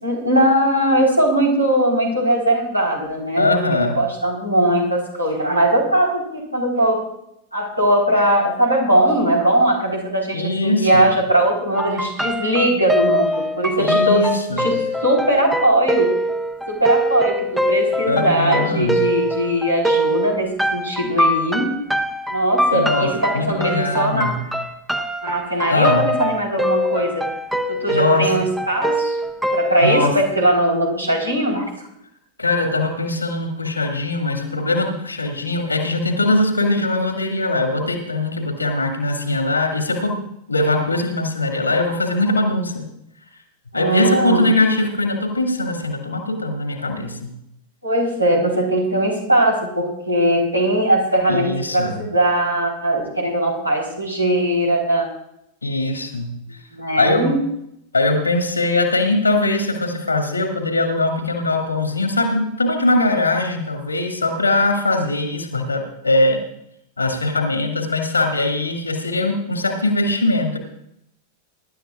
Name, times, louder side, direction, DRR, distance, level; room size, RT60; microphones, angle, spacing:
voice 1, 0.0-3.6 3.9-7.0 7.5-14.3 14.6-14.7 15.0-16.1 16.7-21.7 22.3-24.3 25.2-27.2 27.7-29.2 29.5-31.7 43.7-44.5 47.8-55.1 56.7-57.4, right 1 dB, 85° right, -1 dB, 3.9 m, -19 dB
voice 2, 3.4-4.0 10.3-11.1 13.8-14.7 18.1-19.0 22.7-24.4 25.7-26.1 27.9-28.4 29.8-30.1 32.4-40.2 40.5-42.8 43.7-47.3 51.3-52.0 55.6-56.3 57.0-57.3 57.9-66.4 67.0-70.6, left 2 dB, 80° left, 3 dB, 2.3 m, -21 dB
sound 1, 11.8-30.0, equal, 5° right, 1.0 m, -23 dB
24.0 x 12.0 x 2.5 m, 0.78 s
figure-of-eight pair, 90°, 0 cm